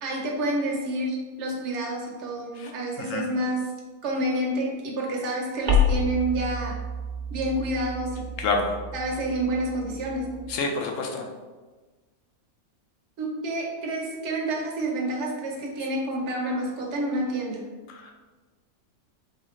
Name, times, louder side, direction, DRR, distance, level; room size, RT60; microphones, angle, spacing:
voice 1, 0.0-3.6 4.0-6.8 7.3-8.2 8.9-10.4 13.2-17.6, right 1 dB, 60° right, -1 dB, 1.1 m, -29 dB
sound 1, 5.7-10.5, left 3 dB, 40° right, 0.8 m, -29 dB
voice 2, 8.4-8.7 10.5-11.2 17.9-18.1, left 3 dB, 70° left, 2 dB, 1.0 m, -28 dB
4.0 x 3.6 x 3.1 m, 1.3 s
omnidirectional pair, 1.5 m